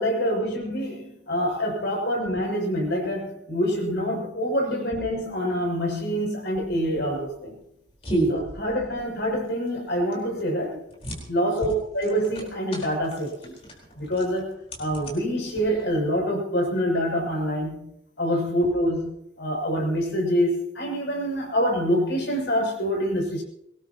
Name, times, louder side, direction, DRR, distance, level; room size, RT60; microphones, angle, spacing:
voice 1, 0.0-7.6 8.3-10.8 11.3-13.6 14.0-17.9 18.2-23.4, equal, 60° left, 0 dB, 6.8 m, -26 dB
sound 1, 6.5-16.1, right 2 dB, 30° left, 4.4 m, -34 dB
23.5 x 19.0 x 3.0 m, 0.78 s
head